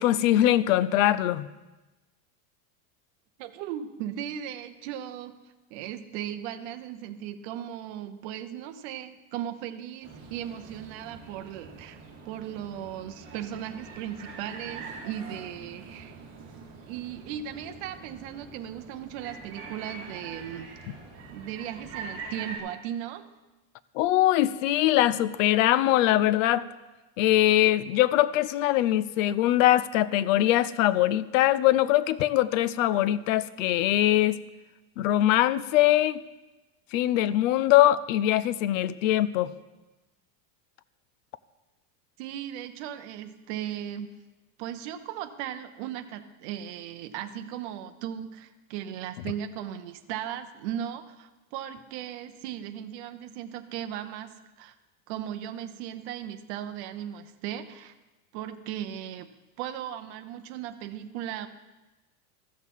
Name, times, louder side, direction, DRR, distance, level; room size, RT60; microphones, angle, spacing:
voice 1, 0.0-1.5 24.0-26.7 27.2-34.4 35.0-36.2 36.9-39.5, left 14 dB, 55° left, 16 dB, 0.5 m, -22 dB
voice 2, 3.4-5.3 5.7-12.0 12.2-16.2 16.9-20.7 21.3-23.2 42.2-44.1 44.6-54.7 55.1-57.9 58.3-59.3 59.6-61.5, right 10 dB, 45° right, 8 dB, 0.7 m, -37 dB
sound 1, 10.0-22.6, right 4 dB, 30° right, 2.4 m, -44 dB
14.0 x 6.4 x 5.4 m, 1.1 s
supercardioid pair, 175°, 47 cm